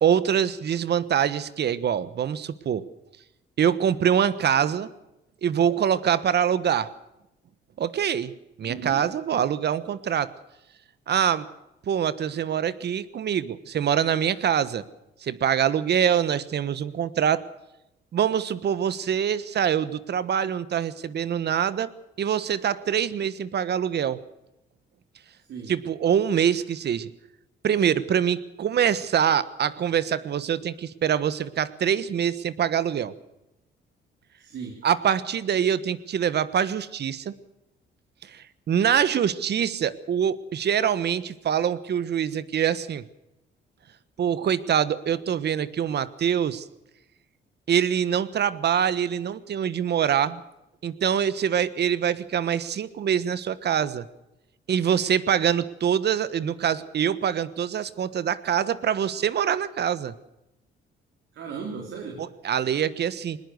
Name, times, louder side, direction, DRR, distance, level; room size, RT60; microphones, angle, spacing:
voice 1, 0.0-2.8 3.6-4.9 5.4-6.9 7.8-8.3 8.6-10.3 11.1-11.5 11.9-14.8 15.2-17.4 18.1-21.9 22.2-24.2 25.7-27.1 27.6-33.1 34.8-37.3 38.2-43.0 44.2-46.7 47.7-50.4 50.8-54.0 54.7-60.1 62.2-63.4, right 8 dB, 60° right, 16 dB, 1.4 m, -24 dB
voice 2, 8.6-9.0 25.5-25.7 34.4-34.8 61.3-62.2, right 5 dB, 75° right, 1 dB, 4.2 m, -36 dB
20.5 x 20.0 x 6.5 m, 0.91 s
cardioid pair, 90°, 20 cm